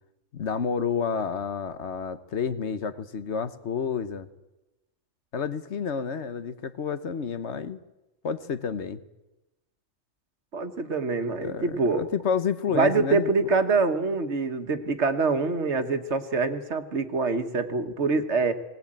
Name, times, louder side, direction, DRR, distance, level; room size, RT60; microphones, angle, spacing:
voice 1, 0.3-4.3 5.3-7.8 8.2-9.0 11.4-13.3, left 6 dB, 65° left, 12 dB, 1.3 m, -30 dB
voice 2, 10.5-12.1 12.7-18.5, right 4 dB, 60° right, 8 dB, 1.6 m, -25 dB
19.5 x 19.0 x 8.8 m, 1.0 s
omnidirectional pair, 1.3 m